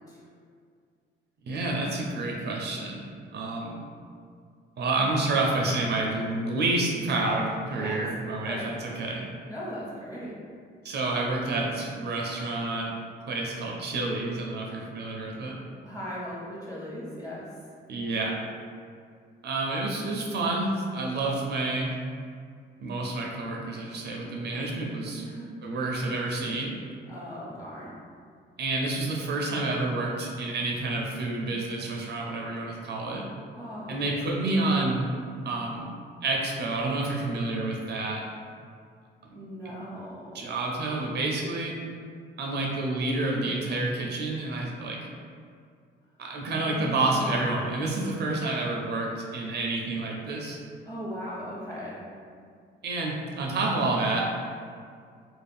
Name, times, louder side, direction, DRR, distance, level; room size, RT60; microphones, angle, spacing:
voice 1, 1.5-3.8 4.8-9.3 10.8-12.9 13.3-15.6 17.9-18.4 19.4-21.9 22.8-25.2 25.6-26.8 28.6-33.2 33.9-35.1 35.4-35.9 36.2-38.2 39.3-39.4 40.3-41.7 42.4-45.0 46.2-50.6 52.8-54.3, right 2 dB, 60° right, -1 dB, 0.4 m, -29 dB
voice 2, 7.7-8.0 8.4-8.6 9.4-10.4 15.8-17.5 25.2-25.5 27.1-28.0 33.5-34.2 39.3-40.5 46.5-47.3 50.9-52.0, equal, 15° left, -7 dB, 1.0 m, -38 dB
2.4 x 2.0 x 3.4 m, 2.2 s
cardioid pair, 90°, 20 cm